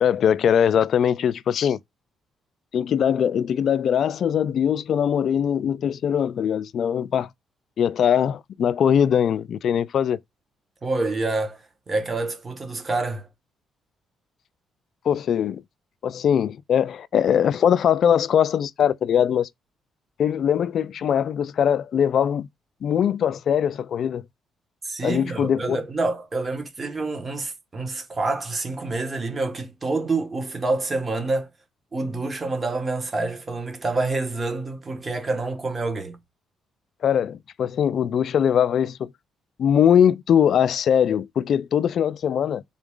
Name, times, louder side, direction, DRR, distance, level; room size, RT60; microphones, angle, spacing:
voice 1, 0.0-1.8 2.7-7.3 7.8-10.2 15.1-15.6 16.0-19.5 20.2-22.5 22.8-24.2 25.0-25.8 37.0-39.1 39.6-42.6, left 8 dB, 60° left, 0.3 m, -21 dB
voice 2, 10.8-13.3 24.8-31.5 31.9-36.2, right 3 dB, 30° right, 1.3 m, -27 dB
3.8 x 2.4 x 3.6 m
cardioid pair, 90°, 0 cm